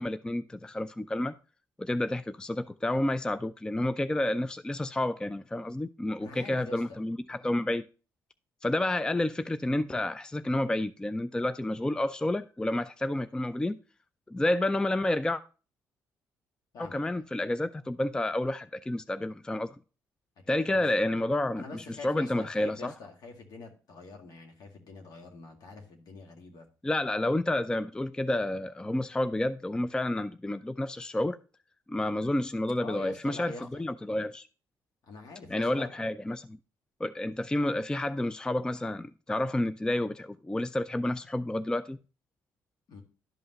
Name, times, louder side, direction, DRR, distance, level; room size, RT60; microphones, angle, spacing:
voice 1, 0.0-1.3 1.8-7.8 8.6-13.8 14.3-15.4 16.8-19.8 20.5-22.9 26.8-31.4 31.9-33.5 33.8-34.5 35.5-36.6 37.0-42.0, left 1 dB, 10° left, 0.4 m, -30 dB
voice 2, 6.2-6.8 16.7-17.2 20.5-20.8 21.6-26.7 32.8-33.8 35.0-36.0 42.9-43.0, left 3 dB, 65° left, 2.1 m, -45 dB
11.5 x 5.5 x 2.9 m
supercardioid pair, 65°, 7 cm